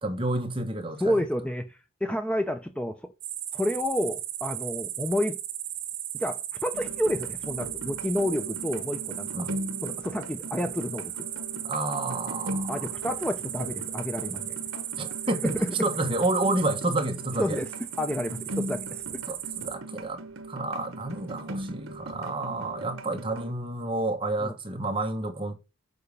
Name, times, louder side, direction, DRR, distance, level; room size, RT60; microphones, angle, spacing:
voice 1, 0.0-1.2 9.3-9.6 11.6-12.9 15.0-17.6 19.3-20.2 20.5-25.5, right 2 dB, 25° right, 1.2 m, -30 dB
voice 2, 1.0-3.1 3.5-5.4 6.1-9.5 9.8-11.3 12.7-14.6 15.4-15.9 17.4-17.7 18.0-19.0 22.5-22.7 24.4-24.5, left 1 dB, 5° left, 0.5 m, -30 dB
sound 1, 3.2-19.7, right 12 dB, 65° right, 1.5 m, -36 dB
sound 2, 6.7-23.5, right 1 dB, 80° right, 1.0 m, -39 dB
6.7 x 4.8 x 6.9 m
head